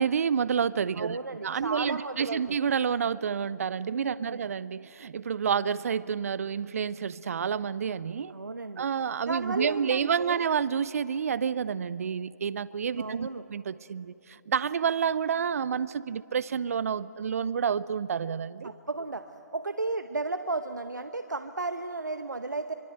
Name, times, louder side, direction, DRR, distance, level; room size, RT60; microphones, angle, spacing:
voice 1, 0.0-1.2 1.4-8.3 8.8-18.7, right 7 dB, 55° right, 19 dB, 0.5 m, -29 dB
voice 2, 1.0-2.6 3.9-4.4 8.3-8.8 9.3-10.4 13.0-13.4 18.6-22.7, right 3 dB, 85° right, 9 dB, 0.9 m, -34 dB
24.5 x 24.0 x 7.8 m, 2.9 s
figure-of-eight pair, 140°, 10 cm